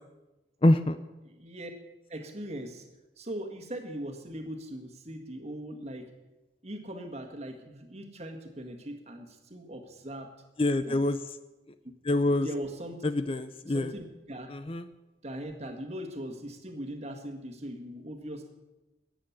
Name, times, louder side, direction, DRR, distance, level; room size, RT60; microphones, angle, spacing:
voice 1, 0.6-1.0 10.6-11.2 12.0-12.5 13.0-13.9 14.5-14.9, left 1 dB, 30° left, 11 dB, 0.5 m, -25 dB
voice 2, 1.2-1.7 2.1-2.9 3.2-6.1 6.6-10.3 10.8-11.0 12.4-13.0 13.7-14.5 15.2-18.5, right 1 dB, 35° right, 5 dB, 1.8 m, -40 dB
14.0 x 9.0 x 8.5 m, 1.1 s
head